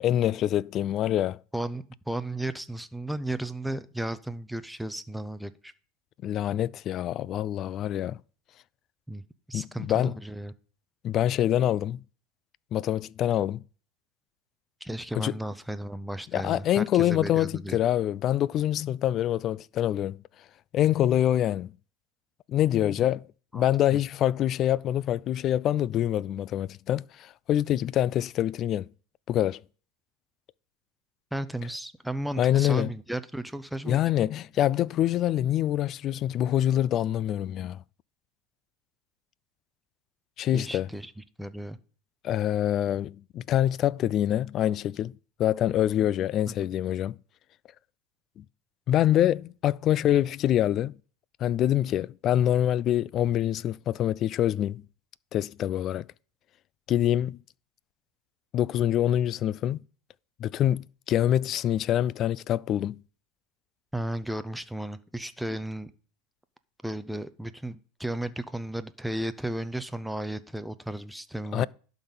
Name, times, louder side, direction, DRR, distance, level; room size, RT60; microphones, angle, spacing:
voice 1, 0.0-1.4 6.2-8.2 9.5-10.1 11.0-12.0 12.7-13.6 15.2-15.3 16.3-20.2 20.7-21.7 22.5-23.3 23.5-28.9 29.3-29.6 32.4-32.9 33.9-37.8 40.4-40.9 42.2-45.1 45.4-47.2 48.4-48.5 48.9-50.9 51.4-54.8 55.3-56.0 56.9-57.4 58.5-59.8 60.4-63.0 71.5-71.7, left 11 dB, 40° left, 0.4 m, -25 dB
voice 2, 1.5-5.7 9.1-9.2 9.5-10.5 14.8-17.8 23.5-23.6 31.3-34.0 40.5-41.8 46.5-46.7 63.9-65.9 66.8-71.7, right 1 dB, ahead, 0.7 m, -34 dB
11.5 x 4.0 x 7.2 m
supercardioid pair, 120°, 0 cm